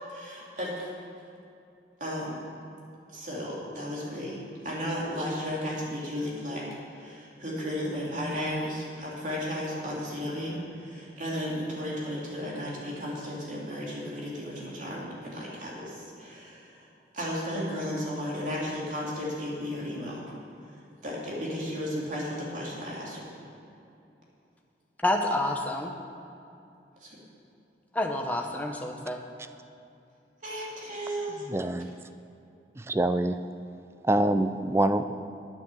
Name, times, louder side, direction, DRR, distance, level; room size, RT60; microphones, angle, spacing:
voice 1, 0.1-0.9 2.0-2.4 3.1-4.4 4.6-6.6 6.9-16.9 17.1-20.3 20.6-23.3 27.0-27.1 30.4-31.4, equal, 45° right, -5 dB, 3.1 m, -34 dB
voice 2, 25.0-25.9 27.9-29.2, left 1 dB, 10° left, 2 dB, 0.9 m, -28 dB
voice 3, 31.5-31.9 32.8-33.4 34.0-35.0, right 1 dB, 15° right, 10 dB, 0.3 m, -25 dB
9.8 x 9.1 x 7.1 m, 2.7 s
head